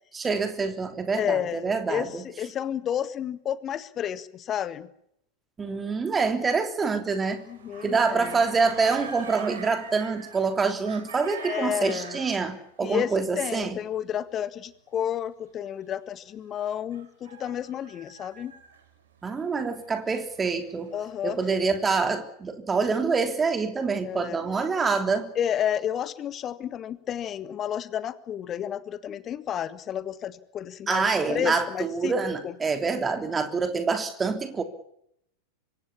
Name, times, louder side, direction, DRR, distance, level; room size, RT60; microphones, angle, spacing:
voice 1, 0.1-2.2 5.6-7.4 7.8-13.8 19.2-20.9 21.2-25.3 30.9-34.6, right 4 dB, 15° right, 3.3 m, -26 dB
voice 2, 1.2-4.9 7.5-8.4 11.4-12.2 12.8-18.5 20.9-21.4 24.0-24.4 25.3-32.1 32.4-32.5, left 9 dB, 30° left, 1.7 m, -31 dB
sound 1, 7.1-12.7 16.9-18.9 19.7-21.8, right 6 dB, 60° right, 4.7 m, -43 dB
26.0 x 23.5 x 7.2 m
figure-of-eight pair, 90°, 0 cm